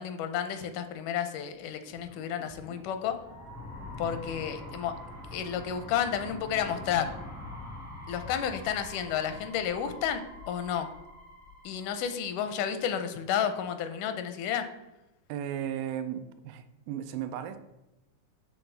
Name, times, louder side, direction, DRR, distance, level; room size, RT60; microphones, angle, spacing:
voice 1, 0.0-3.2 4.0-4.9 5.3-7.1 8.1-10.9 11.6-14.6, left 8 dB, 85° left, 8 dB, 2.1 m, -31 dB
sound 1, 1.7-12.6, left 1 dB, 10° left, 0.4 m, -45 dB
voice 2, 15.3-17.6, right 10 dB, 85° right, 9 dB, 2.1 m, -35 dB
10.5 x 3.6 x 3.3 m, 0.94 s
omnidirectional pair, 3.7 m